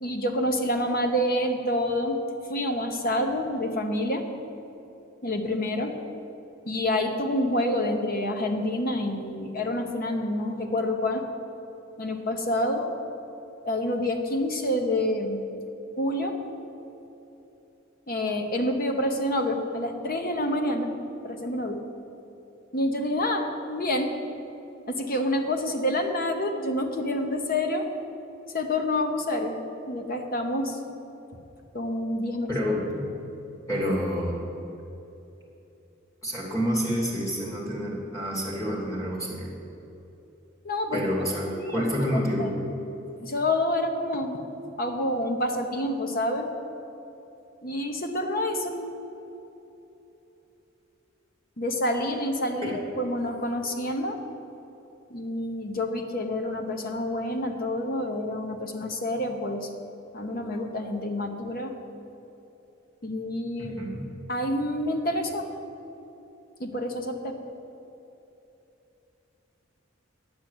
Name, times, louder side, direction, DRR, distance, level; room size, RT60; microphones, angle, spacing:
voice 1, 0.0-2.2 2.5-4.2 5.2-6.0 6.6-11.2 12.0-12.9 13.6-15.4 16.0-16.4 18.1-20.9 21.2-21.8 22.7-24.1 24.9-27.9 28.5-29.6 29.9-30.8 31.7-32.5 40.6-41.0 41.5-41.9 42.4-42.5 42.8-42.9 43.2-44.4 44.8-46.5 47.6-48.8 51.6-54.2 55.1-59.7 60.1-61.7 63.0-63.7 64.3-65.5 66.6-67.3, left 1 dB, 45° left, 4 dB, 1.1 m, -28 dB
voice 2, 32.5-33.1 33.7-34.4 36.2-39.5 40.9-42.6 52.6-52.7 63.6-64.1, equal, 15° left, -4 dB, 2.8 m, -28 dB
10.5 x 7.2 x 8.1 m, 3.0 s
head